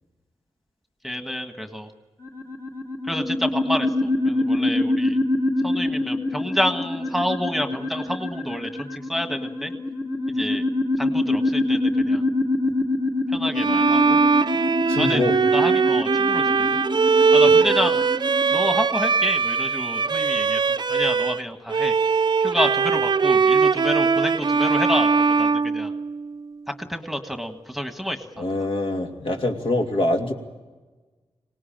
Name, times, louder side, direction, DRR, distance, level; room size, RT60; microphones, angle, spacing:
voice 1, 1.0-1.9 3.0-5.2 5.6-9.7 10.3-10.6 11.0-12.2 13.3-14.2 15.0-15.2 15.5-16.8 17.3-18.0 18.5-20.6 20.9-21.9 22.4-25.9 26.8-28.4, equal, ahead, 6 dB, 1.6 m, -28 dB
sound 1, 2.2-18.6, left 2 dB, 30° left, 1.9 m, -25 dB
Bowed string instrument, 13.5-21.4 21.7-26.5, right 5 dB, 45° right, 0.7 m, -20 dB
voice 2, 14.9-15.3 17.5-17.6 28.4-30.3, left 1 dB, 60° left, 2 dB, 2.8 m, -24 dB
25.5 x 18.5 x 8.9 m, 1.3 s
wide cardioid pair, 110°, 10 cm